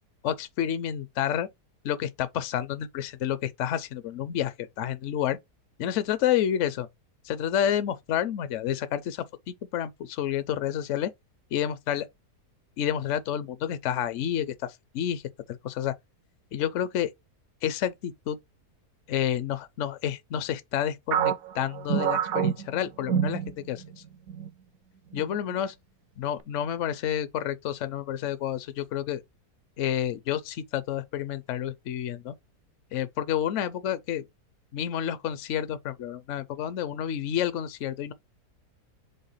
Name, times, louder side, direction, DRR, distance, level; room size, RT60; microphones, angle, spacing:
voice 1, 0.2-1.5 1.8-5.4 5.8-6.9 7.2-11.1 11.5-12.1 12.8-15.9 16.5-17.1 17.6-18.4 19.1-24.0 25.1-25.8 26.2-29.2 29.8-32.3 32.9-34.2 34.7-38.1, left 10 dB, 65° left, 0.8 m, -29 dB
sound 1, 21.1-24.0 24.3-24.5 25.1-25.6, right 9 dB, 65° right, 0.9 m, -27 dB
5.6 x 3.3 x 5.4 m
omnidirectional pair, 1.8 m